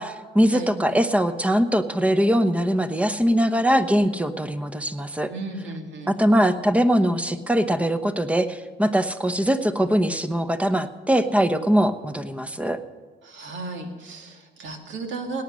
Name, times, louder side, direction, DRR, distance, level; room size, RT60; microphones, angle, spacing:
voice 1, 0.0-5.3 6.1-12.8, equal, 5° right, 11 dB, 0.9 m, -22 dB
voice 2, 5.3-6.2 13.2-15.4, right 3 dB, 70° right, 3 dB, 2.2 m, -34 dB
18.0 x 9.8 x 6.3 m, 1.5 s
cardioid pair, 90°, 20 cm